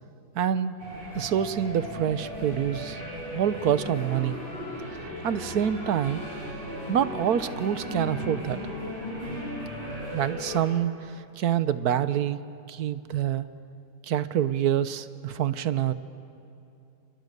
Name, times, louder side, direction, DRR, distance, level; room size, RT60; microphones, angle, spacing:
voice 1, 0.3-0.7 1.1-3.0 3.3-4.4 4.9-6.2 6.9-8.6 10.1-12.4 12.7-13.5 14.0-15.9, right 9 dB, 65° right, 13 dB, 1.4 m, -26 dB
sound 1, 0.8-10.6, left 1 dB, 30° right, 7.2 m, -36 dB
29.5 x 29.5 x 6.8 m, 2.8 s
omnidirectional pair, 1.8 m